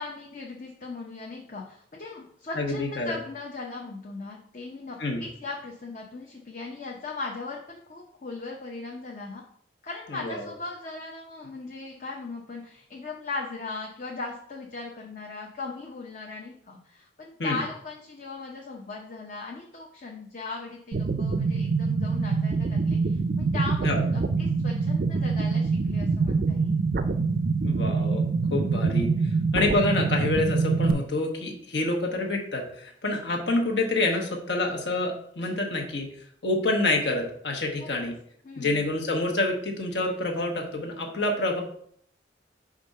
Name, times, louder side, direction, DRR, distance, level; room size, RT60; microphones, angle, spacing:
voice 1, 0.0-9.4 9.8-26.8 37.8-37.9 38.4-38.9, left 3 dB, 45° left, -1 dB, 0.7 m, -38 dB
voice 2, 2.5-3.2 5.0-5.2 10.1-10.5 17.4-17.6 23.8-24.0 27.6-28.2 28.5-29.1 29.5-36.1 36.4-38.2 38.6-41.6, left 2 dB, 70° left, 1 dB, 1.2 m, -27 dB
sound 1, 20.9-30.9, right 4 dB, 50° right, 0.4 m, -25 dB
5.2 x 3.7 x 5.4 m, 0.64 s
head